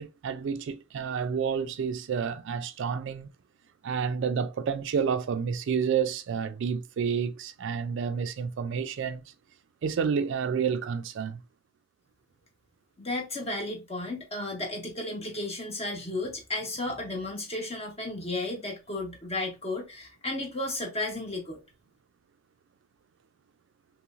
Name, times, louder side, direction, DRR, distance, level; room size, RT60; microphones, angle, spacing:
voice 1, 0.0-3.3 3.8-9.2 9.8-11.4, right 6 dB, 60° right, 0.3 m, -29 dB
voice 2, 13.0-21.6, left 2 dB, 30° left, 1.0 m, -33 dB
3.0 x 3.0 x 2.4 m
head